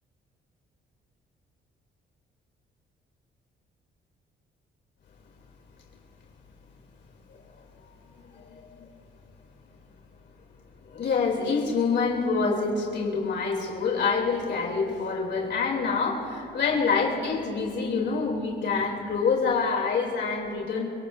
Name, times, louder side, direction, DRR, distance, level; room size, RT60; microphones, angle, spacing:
voice 1, 8.1-8.9 10.8-20.9, left 4 dB, 60° left, -1 dB, 3.2 m, -26 dB
28.5 x 17.5 x 2.7 m, 2.8 s
cardioid pair, 90°, 20 cm